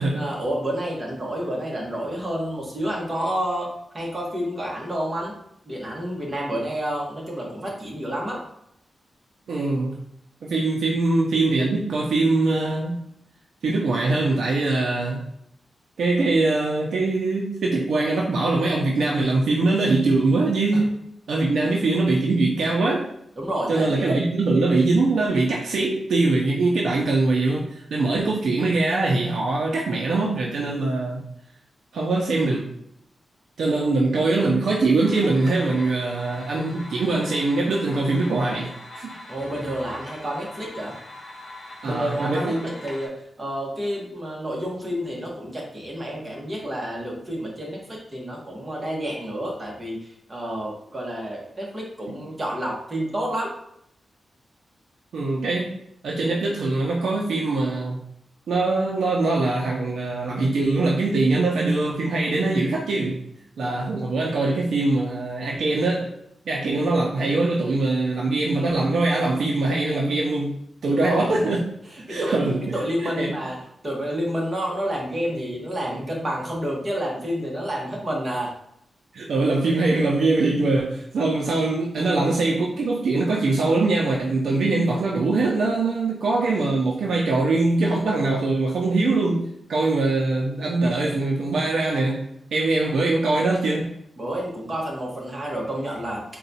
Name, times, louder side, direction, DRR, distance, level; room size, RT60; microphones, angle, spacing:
voice 1, 0.0-3.7 3.9-5.3 5.7-8.4 20.7-20.8 21.5-21.7 23.4-24.2 39.3-40.9 41.8-53.5 70.9-71.3 72.1-72.4 72.7-73.6 73.8-78.5 94.2-96.2, equal, 25° right, -2 dB, 1.0 m, -29 dB
voice 2, 9.5-10.0 10.4-13.0 13.6-15.3 16.0-21.0 21.3-23.1 23.7-31.2 31.9-32.7 33.6-39.2 41.8-42.6 52.1-52.2 55.1-55.8 56.0-58.0 58.5-63.2 63.6-66.1 66.5-70.6 70.8-71.6 72.1-73.3 79.1-93.9, right 2 dB, 75° right, -2 dB, 0.5 m, -22 dB
sound 1, 35.0-43.1, left 1 dB, 45° left, 0.9 m, -42 dB
3.9 x 2.2 x 4.0 m, 0.75 s
wide cardioid pair, 160°, 0 cm